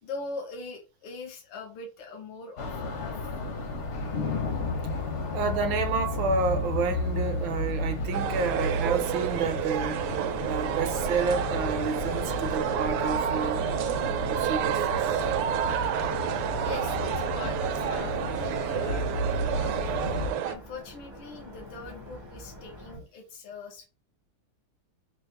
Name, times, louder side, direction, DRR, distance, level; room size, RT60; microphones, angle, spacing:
voice 1, 0.0-3.2 16.6-19.0 19.5-20.1 20.4-23.9, left 4 dB, 80° left, 1.9 m, -41 dB
sound 1, 2.6-20.3, left 2 dB, 60° left, 0.7 m, -32 dB
voice 2, 5.3-10.0 10.4-13.6 14.2-15.2, right 5 dB, 70° right, 1.3 m, -30 dB
sound 2, 8.1-20.6, right 10 dB, 85° right, 1.5 m, -30 dB
sound 3, 16.5-23.0, equal, 30° right, 0.5 m, -47 dB
5.3 x 2.1 x 3.3 m
omnidirectional pair, 2.4 m